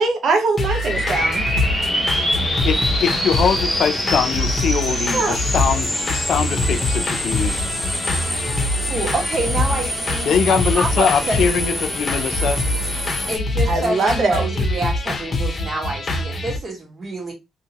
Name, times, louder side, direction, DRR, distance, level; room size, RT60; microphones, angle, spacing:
voice 1, 0.0-1.4 5.1-5.4 13.7-14.5, right 3 dB, 60° right, 0.9 m, -21 dB
sound 1, 0.6-16.6, left 2 dB, 30° left, 0.9 m, -25 dB
sound 2, 0.7-13.4, equal, ahead, 1.5 m, -25 dB
voice 2, 2.6-7.7 10.2-12.6, left 7 dB, 60° left, 0.6 m, -22 dB
voice 3, 8.1-11.4 13.3-17.3, right 2 dB, 35° right, 1.6 m, -27 dB
2.8 x 2.7 x 2.9 m
cardioid pair, 90°, 0 cm